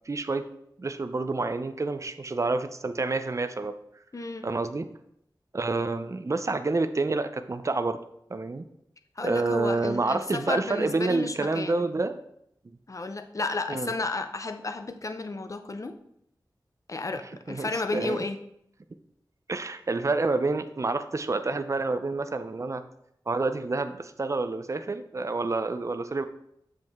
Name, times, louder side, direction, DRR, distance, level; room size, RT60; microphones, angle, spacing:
voice 1, 0.1-0.5 0.8-3.7 4.4-4.9 5.5-8.0 8.3-8.7 9.2-12.2 13.7-13.9 17.5-18.3 19.5-22.8 23.3-26.2, right 3 dB, 40° right, 10 dB, 0.5 m, -28 dB
voice 2, 4.1-4.5 9.2-11.9 12.9-16.0 16.9-18.4, left 3 dB, 40° left, 7 dB, 0.6 m, -32 dB
7.5 x 5.4 x 3.5 m, 0.75 s
wide cardioid pair, 70°, 8 cm